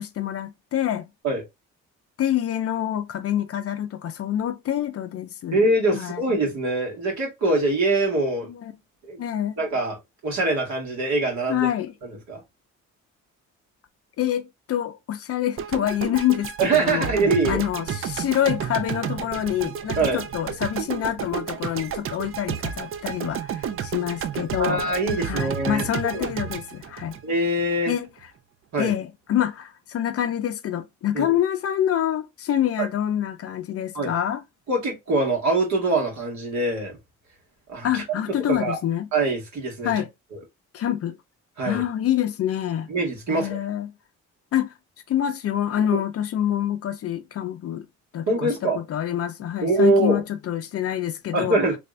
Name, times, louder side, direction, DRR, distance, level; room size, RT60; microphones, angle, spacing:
voice 1, 0.0-1.1 2.2-5.6 5.9-6.2 8.5-8.7 9.2-9.6 11.5-11.9 14.2-17.1 17.5-24.8 25.2-27.2 27.9-28.1 28.8-34.4 37.8-39.1 39.8-40.1 40.7-41.1 41.6-42.9 43.3-43.9 44.5-44.7 45.1-47.9 48.1-51.6, left 11 dB, 50° left, 0.5 m, -26 dB
voice 2, 5.5-8.5 9.1-9.2 9.6-10.0 10.2-11.7 12.3-12.4 16.6-17.6 20.0-20.2 24.6-25.9 26.1-26.3 27.2-27.9 28.7-28.9 31.1-31.4 33.9-34.1 34.7-36.9 37.7-38.0 38.5-38.8 39.1-39.9 40.3-40.4 41.6-41.8 42.9-43.6 48.3-48.8 49.6-50.2 51.3-51.8, right 2 dB, 65° right, 1.8 m, -23 dB
sound 1, 15.6-27.8, right 8 dB, 45° right, 0.4 m, -31 dB
3.4 x 2.5 x 3.1 m
cardioid pair, 125°, 31 cm